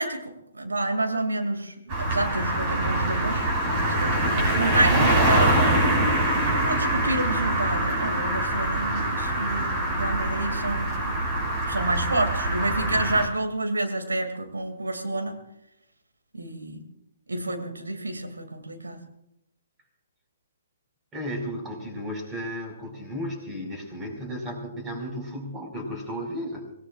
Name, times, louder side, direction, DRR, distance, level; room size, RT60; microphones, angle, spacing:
voice 1, 0.0-3.5 4.0-5.6 6.6-11.1 11.7-15.4 16.3-16.8 17.3-19.0, right 2 dB, 80° right, 5 dB, 2.6 m, -29 dB
sound 1, 1.9-13.3, right 1 dB, 30° right, 6.2 m, -24 dB
voice 2, 21.1-26.7, equal, 15° right, 2 dB, 5.4 m, -34 dB
25.5 x 19.0 x 2.5 m, 0.84 s
figure-of-eight pair, 125°, 0 cm